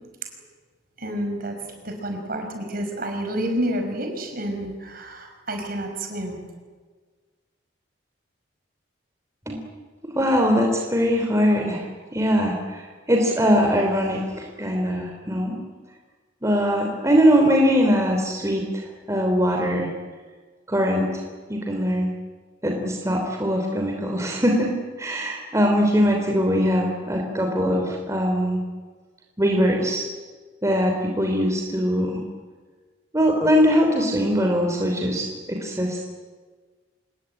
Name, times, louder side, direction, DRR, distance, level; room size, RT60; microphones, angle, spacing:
voice 1, 1.0-1.5 1.8-6.4, right 1 dB, 50° right, 4 dB, 6.0 m, -29 dB
voice 2, 10.1-11.9 12.1-15.6 16.4-19.9 20.7-21.2 21.5-22.1 22.6-28.6 29.4-30.1 30.6-32.2 33.1-36.0, equal, 15° right, 2 dB, 3.2 m, -21 dB
26.0 x 21.5 x 9.1 m, 1.5 s
head